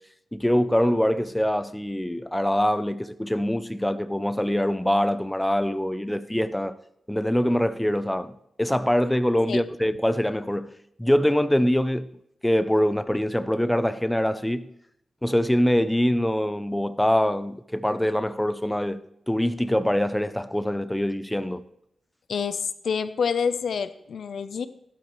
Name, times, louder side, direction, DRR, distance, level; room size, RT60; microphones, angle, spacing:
voice 1, 0.3-6.8 7.1-12.1 12.4-14.7 15.2-21.7, equal, 5° left, 0.5 m, -24 dB
voice 2, 22.3-24.7, left 6 dB, 75° left, 0.7 m, -27 dB
16.0 x 12.0 x 3.2 m
wide cardioid pair, 95°, 0 cm